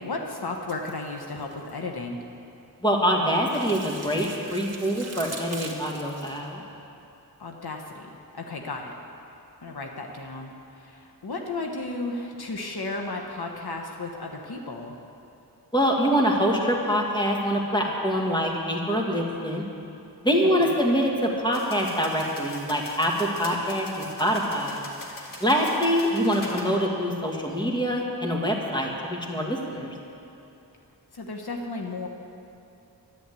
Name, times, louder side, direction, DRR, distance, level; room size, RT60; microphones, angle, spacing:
voice 1, 0.0-2.2 7.4-8.1 8.3-8.9 9.6-14.9 20.4-20.8 31.1-32.1, left 3 dB, 70° left, 1 dB, 1.2 m, -34 dB
sound 1, 0.7-1.7 3.3-6.4, right 3 dB, 40° right, 1.9 m, -41 dB
voice 2, 2.8-6.6 15.7-19.6 20.2-24.8 25.4-29.9, equal, 10° left, -1 dB, 2.1 m, -25 dB
sound 2, 21.5-26.7, left 1 dB, 55° left, 2.3 m, -42 dB
12.0 x 11.0 x 8.3 m, 2.8 s
wide cardioid pair, 70°, 39 cm